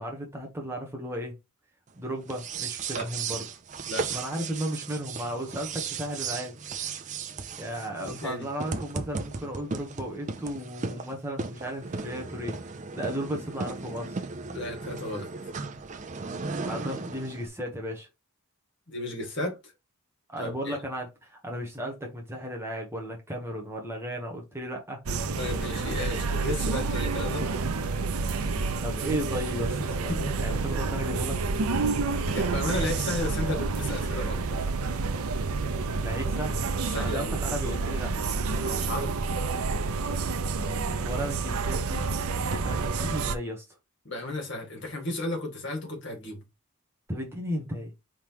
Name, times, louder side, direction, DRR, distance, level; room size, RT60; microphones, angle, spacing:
voice 1, 0.0-1.4 2.0-3.4 4.1-6.6 7.6-12.6 12.9-14.2 16.7-18.1 20.3-25.0 28.8-31.4 36.0-36.6 37.0-38.1 41.0-42.1 42.4-43.7 47.1-47.9, equal, 10° right, 1.0 m, -34 dB
sound 1, 2.2-17.5, right 4 dB, 35° right, 0.4 m, -36 dB
voice 2, 8.0-8.5 14.5-15.3 18.9-19.6 20.4-20.8 25.4-27.5 30.1-30.4 32.3-34.7 36.9-37.3 38.6-39.2 44.0-46.4, left 1 dB, 55° left, 2.1 m, -34 dB
sound 2, 25.1-43.4, right 4 dB, 85° right, 0.6 m, -29 dB
4.8 x 3.7 x 3.0 m
head